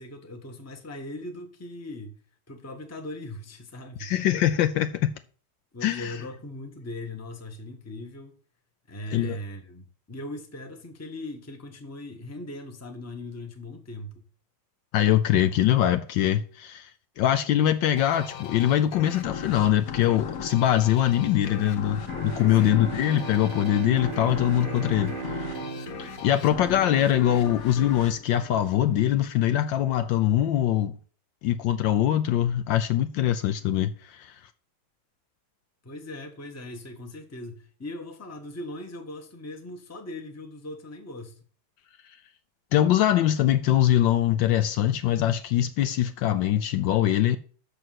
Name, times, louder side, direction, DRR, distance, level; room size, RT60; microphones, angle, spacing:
voice 1, 0.0-2.2 2.5-4.1 5.7-8.3 8.9-14.1 22.5-22.9 35.8-41.4, left 1 dB, 10° left, 0.8 m, -39 dB
voice 2, 4.0-5.1 5.8-6.2 9.1-9.4 14.9-16.9 17.2-25.6 26.0-31.0 31.4-34.4 42.7-47.4, left 11 dB, 75° left, 1.2 m, -23 dB
sound 1, 18.0-29.2, left 6 dB, 55° left, 1.2 m, -37 dB
Bowed string instrument, 22.0-27.7, right 11 dB, 60° right, 1.3 m, -39 dB
6.7 x 6.2 x 7.6 m
omnidirectional pair, 2.3 m